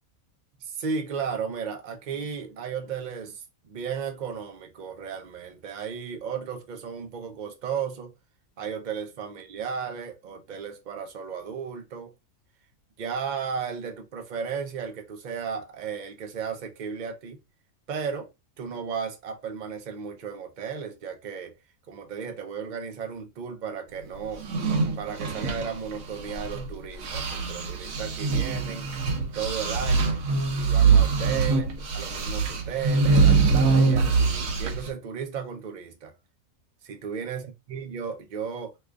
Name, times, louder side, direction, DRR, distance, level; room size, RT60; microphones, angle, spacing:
voice 1, 0.6-8.1 8.6-12.1 13.0-17.4 17.9-18.3 18.6-21.5 21.9-24.4 25.0-28.9 29.3-30.3 30.5-36.1 36.8-38.7, right 6 dB, 50° right, 0.6 m, -34 dB
sound 1, 24.3-26.7 27.0-34.9, right 4 dB, 75° right, 1.1 m, -23 dB
3.1 x 2.4 x 3.4 m
omnidirectional pair, 1.5 m